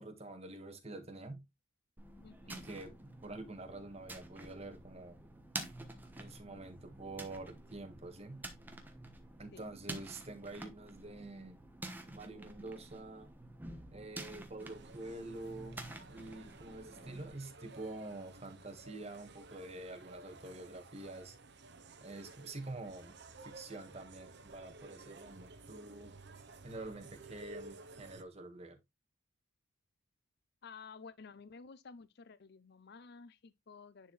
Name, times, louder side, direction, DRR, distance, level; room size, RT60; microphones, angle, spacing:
voice 1, 0.0-1.4 2.5-5.2 6.2-8.4 9.4-11.6 12.1-13.3 13.9-21.4 22.0-23.1 23.4-26.2 26.6-28.8, right 2 dB, 30° right, 1.6 m, -47 dB
sound 1, 2.0-17.3, right 2 dB, 10° right, 1.1 m, -49 dB
voice 2, 2.2-2.7 9.5-9.6 30.6-34.1, left 5 dB, 50° left, 0.5 m, -53 dB
sound 2, 14.6-28.2, right 3 dB, 55° right, 0.8 m, -54 dB
10.0 x 4.5 x 3.2 m
head